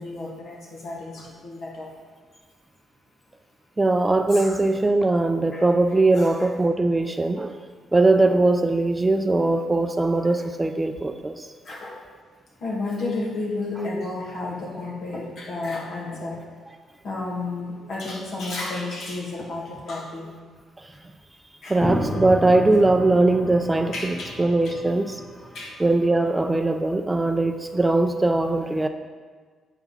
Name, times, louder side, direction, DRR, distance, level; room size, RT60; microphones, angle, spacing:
voice 1, 0.0-1.9 4.3-4.6 5.5-5.6 6.1-6.5 11.7-12.0 12.6-16.4 17.0-20.3 21.6-21.8 23.9-24.3 24.6-24.8 25.5-25.8, left 2 dB, 60° left, -2 dB, 2.0 m, -32 dB
voice 2, 3.8-7.6 7.9-11.5 21.7-25.2 25.8-28.9, right 2 dB, 15° right, 7 dB, 0.4 m, -20 dB
sound 1, 21.8-26.5, equal, 15° left, 1.6 m, -33 dB
7.9 x 4.6 x 5.6 m, 1.5 s
cardioid pair, 90°, 0 cm